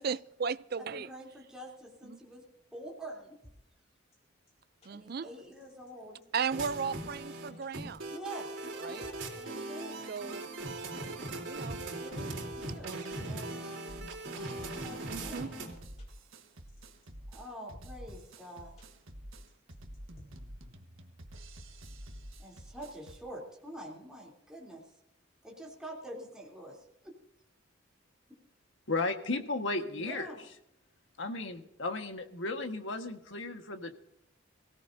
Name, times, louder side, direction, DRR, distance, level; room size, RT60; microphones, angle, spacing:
voice 1, 0.0-1.1 2.0-2.2 4.9-5.3 6.3-8.1 8.8-9.1 10.1-10.4 11.5-11.8 12.8-13.1 15.1-15.5, right 6 dB, 50° right, 0.4 m, -36 dB
voice 2, 0.8-2.4 2.7-3.4 4.9-6.2 8.1-8.5 9.3-10.0 11.5-13.0 13.3-13.6 14.8-15.6 17.3-18.8 22.4-24.8 25.4-27.1 28.3-28.4 29.9-30.4, right 1 dB, 5° right, 3.3 m, -46 dB
sound 1, 3.4-3.5 4.1-4.2 4.5-4.6 4.8-4.9 5.5-5.9 6.2-6.3 6.6-7.1 7.6-7.7 8.3-9.1 9.7-9.8 10.1-10.2 10.4-10.5 11.1-11.8 12.1-12.7 13.2-13.3 13.9-14.7 15.3-15.4 15.6-15.7 16.0-16.1 16.7-17.1 17.4-17.5 17.7-18.3 18.8-18.9 19.5-20.3, left 1 dB, 35° left, 4.5 m, -55 dB
sound 2, 6.5-15.8, right 2 dB, 65° right, 3.8 m, -40 dB
sound 3, 13.9-23.2, right 1 dB, 85° right, 1.6 m, -49 dB
voice 3, 28.9-30.3 31.2-33.9, left 3 dB, 70° left, 1.5 m, -34 dB
23.5 x 17.0 x 2.7 m
head